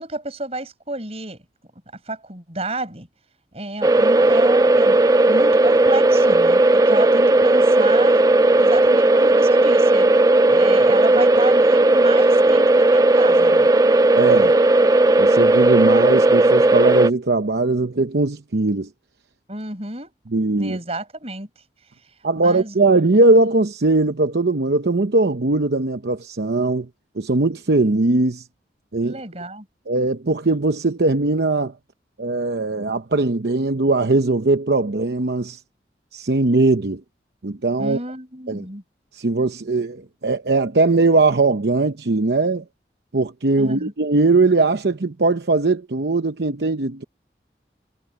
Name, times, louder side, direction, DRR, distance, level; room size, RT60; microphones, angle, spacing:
voice 1, 0.0-1.4 1.9-3.1 3.5-5.0 5.3-8.2 8.5-10.1 10.5-13.7 19.5-20.1 20.6-21.5 22.4-22.8 29.0-29.7 37.8-38.8 43.5-43.9, right 2 dB, 35° right, 6.8 m, -31 dB
sound 1, 3.8-17.1, right 2 dB, 20° right, 0.4 m, -15 dB
voice 2, 14.2-14.6 15.2-18.9 20.3-20.8 22.2-26.9 27.2-28.5 28.9-29.2 29.9-31.7 32.2-35.6 36.1-37.0 37.4-38.0 38.5-38.7 39.1-42.6 43.1-47.0, right 3 dB, 70° right, 0.8 m, -20 dB
head